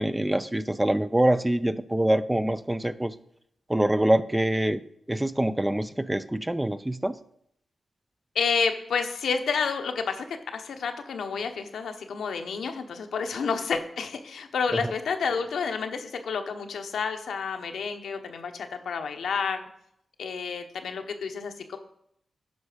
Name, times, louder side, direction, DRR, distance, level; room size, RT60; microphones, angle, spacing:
voice 1, 0.0-3.1 3.7-4.8 5.1-7.2, right 1 dB, 15° right, 13 dB, 0.5 m, -25 dB
voice 2, 8.3-19.6 20.2-21.8, left 5 dB, 85° left, 5 dB, 0.9 m, -30 dB
9.5 x 5.5 x 5.0 m, 0.71 s
cardioid pair, 65°, 0 cm